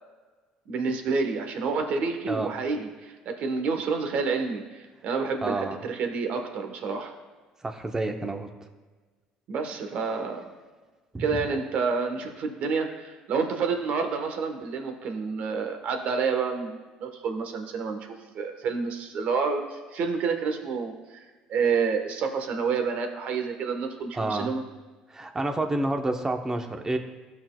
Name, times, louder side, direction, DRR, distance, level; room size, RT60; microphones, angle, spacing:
voice 1, 0.7-7.1 9.5-10.5 11.2-18.0 18.3-24.6, right 5 dB, 60° right, 5 dB, 1.3 m, -29 dB
voice 2, 5.4-5.8 7.6-8.5 11.1-11.4 24.1-24.5 25.1-27.0, right 2 dB, 20° right, 5 dB, 1.0 m, -29 dB
14.0 x 6.0 x 2.3 m, 1.3 s
supercardioid pair, 90°, 3 cm